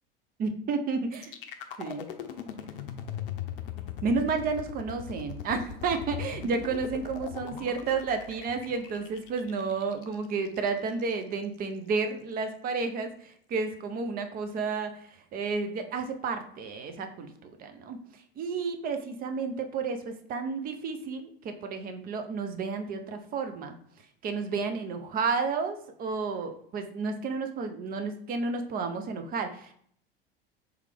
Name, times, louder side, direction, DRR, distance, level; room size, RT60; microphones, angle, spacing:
voice 1, 0.4-1.3 1.8-2.1 4.0-23.7 24.2-29.7, right 4 dB, 30° right, 6 dB, 0.6 m, -31 dB
sound 1, 1.1-11.1, left 9 dB, 65° left, 0.6 m, -40 dB
3.3 x 3.2 x 3.4 m, 0.63 s
figure-of-eight pair, 75°, 29 cm